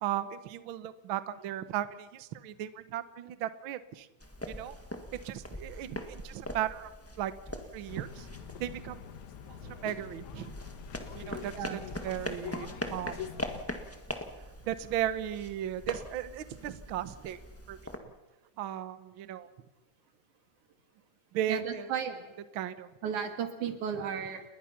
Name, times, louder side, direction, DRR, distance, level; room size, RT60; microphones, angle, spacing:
voice 1, 0.0-4.1 4.5-4.7 5.1-6.9 7.2-8.3 8.6-9.0 9.5-10.5 11.1-13.4 14.7-17.4 17.7-17.8 18.6-19.5 21.3-21.9 22.5-22.9, right 11 dB, 60° right, 12 dB, 1.4 m, -36 dB
sound 1, 4.2-18.0, left 1 dB, 10° left, 0.9 m, -42 dB
sound 2, 7.9-13.6, left 10 dB, 80° left, 2.5 m, -45 dB
voice 2, 21.5-22.2 23.0-24.4, right 7 dB, 85° right, 7 dB, 3.4 m, -34 dB
29.5 x 21.0 x 5.9 m, 1.1 s
omnidirectional pair, 3.4 m